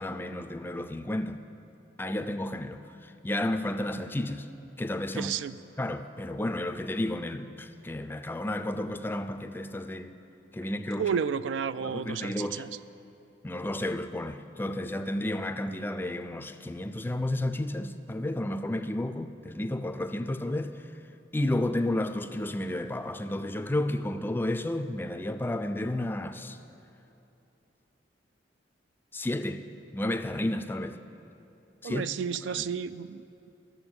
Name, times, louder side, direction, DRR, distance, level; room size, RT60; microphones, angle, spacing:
voice 1, 0.0-1.4 2.0-4.5 4.8-5.3 5.8-10.1 10.5-11.2 11.8-12.7 13.4-20.8 21.3-26.6 29.1-29.6 29.9-31.0 31.8-32.0 32.6-32.7, left 1 dB, 10° left, 0.4 m, -32 dB
voice 2, 5.1-5.5 11.0-12.7 31.8-33.5, right 7 dB, 90° right, 0.4 m, -32 dB
13.5 x 6.9 x 8.7 m
head